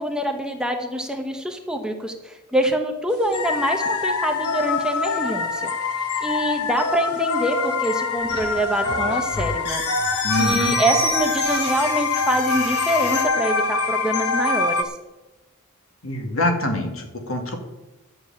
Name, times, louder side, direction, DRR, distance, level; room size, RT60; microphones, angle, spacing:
voice 1, 0.0-5.7 6.2-9.8 10.4-14.9, right 1 dB, 5° right, 4 dB, 1.0 m, -25 dB
sound 1, 3.3-14.8, left 4 dB, 90° left, 1.2 m, -24 dB
sound 2, 8.2-13.2, left 1 dB, 50° left, 3.4 m, -30 dB
voice 2, 10.2-10.8 16.0-17.6, left 1 dB, 70° left, 4 dB, 2.3 m, -24 dB
11.0 x 7.1 x 8.8 m, 1.0 s
head